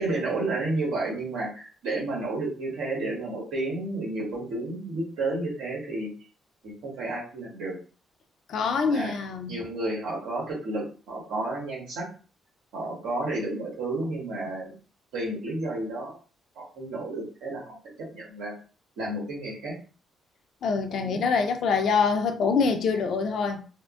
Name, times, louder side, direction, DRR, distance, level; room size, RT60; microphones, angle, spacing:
voice 1, 0.0-6.1 6.6-7.8 8.8-9.1 9.5-12.1 12.7-14.8 15.1-16.2 16.5-18.5 19.0-19.8 21.0-21.2, right 2 dB, 90° right, 1.5 m, -31 dB
voice 2, 8.5-9.6 20.6-23.7, left 5 dB, 65° left, 0.5 m, -25 dB
3.5 x 2.1 x 2.4 m
cardioid pair, 90°, 0 cm